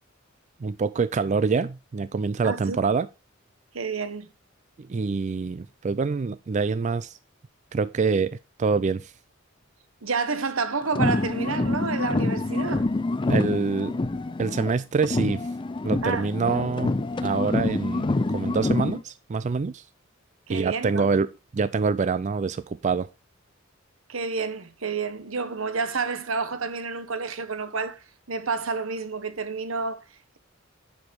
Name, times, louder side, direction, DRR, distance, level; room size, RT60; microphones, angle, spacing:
voice 1, 0.6-3.1 4.8-7.2 7.7-9.1 13.3-14.0 14.4-15.4 15.8-16.9 17.2-19.8 20.5-21.3 21.5-23.1, right 4 dB, 35° right, 0.4 m, -25 dB
voice 2, 2.4-2.8 3.7-4.3 10.0-12.9 16.0-16.3 20.5-21.1 24.1-30.4, right 4 dB, 85° right, 1.1 m, -30 dB
sound 1, 10.9-14.7 15.0-19.0, left 2 dB, 25° left, 0.5 m, -26 dB
10.5 x 4.9 x 5.2 m
head